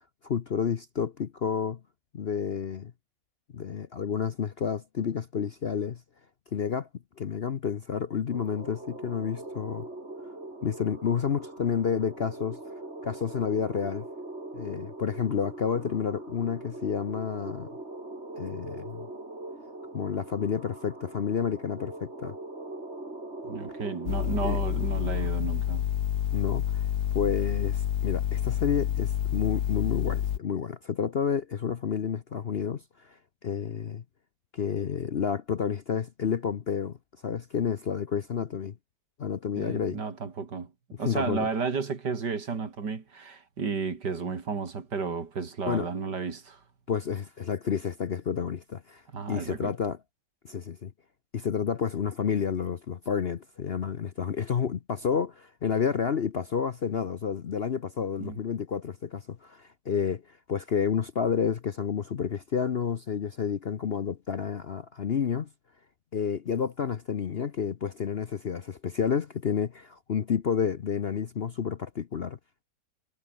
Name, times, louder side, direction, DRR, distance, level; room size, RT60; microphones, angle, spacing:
voice 1, 0.2-1.8 2.1-2.9 3.5-6.0 6.5-6.9 7.2-9.9 10.6-12.6 13.0-14.0 14.5-17.7 18.4-19.1 19.9-22.3 24.4-24.6 26.3-26.8 27.1-33.2 33.4-34.0 34.5-37.0 37.2-38.7 39.2-40.0 41.0-41.5 45.7-45.9 46.9-49.0 49.3-50.0 50.4-50.9 51.3-65.5 66.1-72.4, left 7 dB, 50° left, 0.8 m, -30 dB
sound 1, 8.3-25.3, right 2 dB, 35° right, 5.4 m, -42 dB
voice 2, 23.4-25.8 39.5-40.7 41.0-46.6 49.1-49.7 58.2-58.4, right 5 dB, 75° right, 3.2 m, -32 dB
sound 2, 24.1-30.4, left 10 dB, 70° left, 1.5 m, -28 dB
omnidirectional pair, 1.8 m